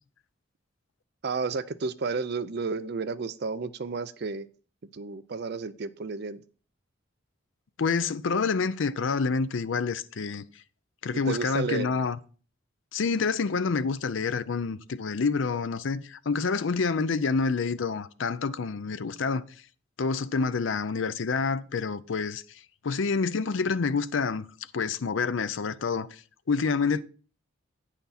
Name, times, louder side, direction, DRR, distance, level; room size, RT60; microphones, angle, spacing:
voice 1, 1.2-4.5 4.9-6.4 11.1-11.9, right 4 dB, 50° right, 0.5 m, -32 dB
voice 2, 7.8-10.4 11.0-12.2 12.9-19.5 20.0-22.4 22.8-24.4 24.7-26.2 26.5-27.0, left 4 dB, 65° left, 0.5 m, -27 dB
9.0 x 5.8 x 4.2 m
head